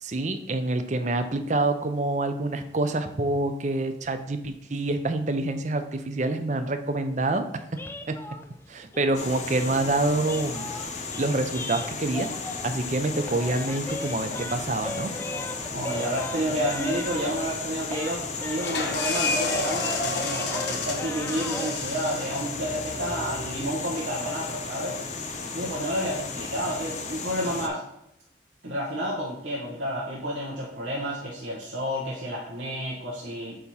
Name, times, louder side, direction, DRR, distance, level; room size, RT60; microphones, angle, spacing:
voice 1, 0.0-7.8 8.1-8.2 8.7-12.3 12.6-15.1, right 2 dB, 40° right, 8 dB, 0.6 m, -27 dB
sound 1, 7.7-12.8 13.1-17.6 17.9-21.8, left 1 dB, 10° left, 0.3 m, -38 dB
sound 2, 9.1-27.7, left 4 dB, 40° left, 0.8 m, -35 dB
voice 2, 15.7-25.0 25.5-27.8 28.6-33.6, equal, 80° right, -5 dB, 1.3 m, -30 dB
sound 3, 18.6-24.1, left 4 dB, 70° left, 1.0 m, -32 dB
8.1 x 3.0 x 5.5 m, 0.79 s
head